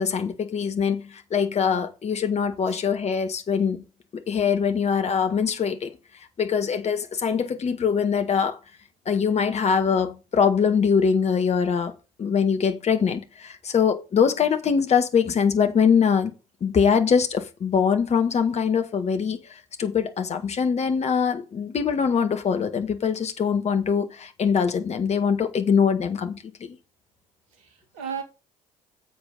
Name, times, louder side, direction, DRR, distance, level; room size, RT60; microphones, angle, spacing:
voice 1, 0.0-3.8 4.1-5.9 6.4-8.6 9.1-11.9 12.2-16.3 16.6-26.8, left 6 dB, 40° left, 1.8 m, -23 dB
voice 2, 27.5-28.2, right 7 dB, 70° right, 2.3 m, -36 dB
9.0 x 7.9 x 3.9 m
figure-of-eight pair, 50°, 18 cm